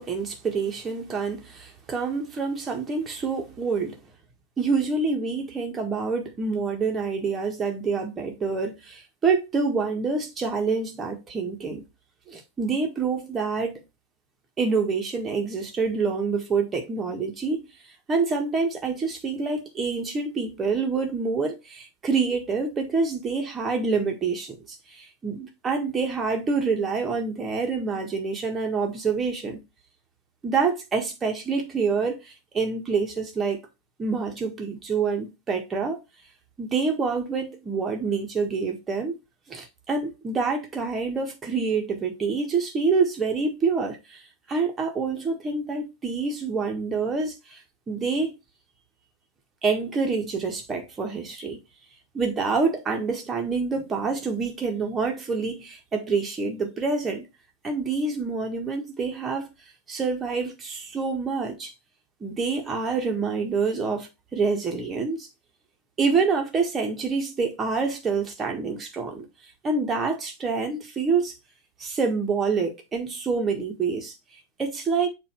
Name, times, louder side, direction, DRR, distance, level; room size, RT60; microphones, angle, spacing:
voice 1, 0.0-4.0 4.6-11.8 12.3-13.8 14.6-17.6 18.1-29.6 30.4-33.6 34.0-36.0 36.6-39.2 39.5-44.2 44.5-47.6 47.9-48.4 49.6-51.6 52.1-57.3 57.6-59.5 59.9-61.7 62.2-65.3 66.0-69.2 69.6-71.3 71.8-74.1 74.6-75.1, right 4 dB, 20° right, 1.6 m, -27 dB
7.2 x 2.8 x 4.5 m
figure-of-eight pair, 90°, 0 cm